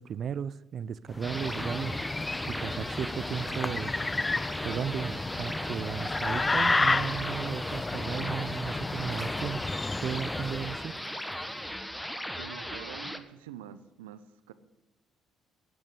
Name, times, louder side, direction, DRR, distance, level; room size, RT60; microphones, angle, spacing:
voice 1, 0.0-2.0 2.5-3.9 4.6-9.6 10.0-11.0, right 8 dB, 55° right, 18 dB, 0.6 m, -35 dB
sound 1, 1.1-10.9, left 3 dB, 25° left, 0.4 m, -32 dB
sound 2, 1.2-13.2, equal, 5° left, 1.5 m, -38 dB
sound 3, 3.1-11.8, right 1 dB, 15° right, 2.4 m, -53 dB
voice 2, 12.4-14.2 14.5-14.6, right 11 dB, 85° right, 13 dB, 0.8 m, -45 dB
10.5 x 9.2 x 8.3 m, 1.0 s
hypercardioid pair, 55°, 0 cm